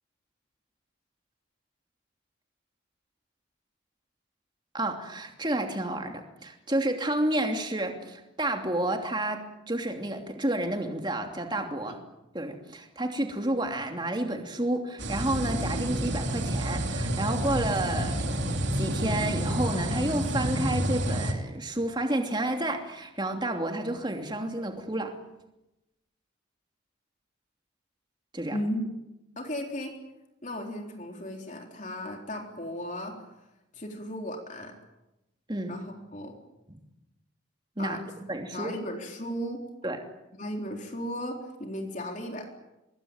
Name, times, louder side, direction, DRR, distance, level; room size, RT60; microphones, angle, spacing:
voice 1, 4.7-12.0 12.3-25.2 28.3-28.6 35.5-35.7 36.7-36.8 37.8-38.0 38.3-38.7 39.8-40.0, right 1 dB, 20° right, 4 dB, 2.9 m, -30 dB
sound 1, 15.0-21.3, right 1 dB, 60° right, 3.3 m, -29 dB
voice 2, 28.5-28.8 29.4-29.9 30.4-33.2 33.7-34.7 35.7-36.4 37.8-38.0 38.5-39.6 40.4-42.5, equal, 35° left, 2 dB, 3.9 m, -35 dB
25.5 x 21.5 x 9.1 m, 0.93 s
head